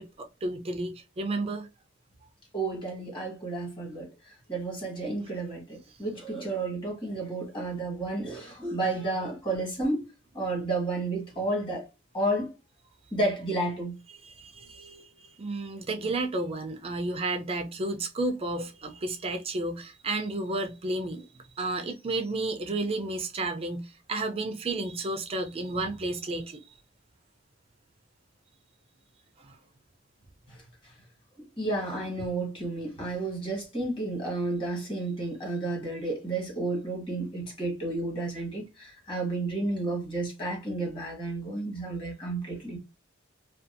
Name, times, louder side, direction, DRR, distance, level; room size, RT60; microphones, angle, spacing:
voice 1, 0.0-1.7 14.2-21.2 21.6-26.6 29.4-29.6, right 2 dB, 30° right, 0.4 m, -32 dB
voice 2, 2.5-4.1 4.5-10.0 10.3-11.9 12.1-12.5 13.1-13.9 30.5-30.6 31.4-42.8, right 2 dB, 25° left, 1.4 m, -31 dB
2.6 x 2.4 x 2.5 m
head